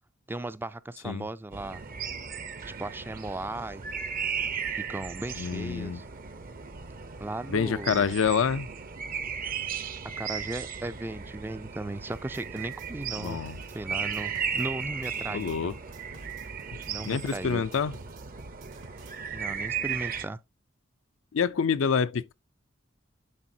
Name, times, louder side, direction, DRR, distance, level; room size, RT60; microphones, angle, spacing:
voice 1, 0.3-1.8 2.6-3.8 4.9-6.0 7.2-8.1 10.2-13.4 13.7-15.7 16.9-17.6 19.3-20.4, right 2 dB, 10° right, 0.3 m, -36 dB
sound 1, 1.5-20.3, right 7 dB, 45° right, 0.7 m, -36 dB
voice 2, 5.4-6.1 7.5-8.7 13.2-13.6 15.3-15.7 17.0-18.0 21.3-22.3, left 6 dB, 90° left, 0.5 m, -27 dB
sound 2, 12.1-19.2, right 3 dB, 75° right, 1.1 m, -52 dB
9.9 x 4.2 x 2.7 m
head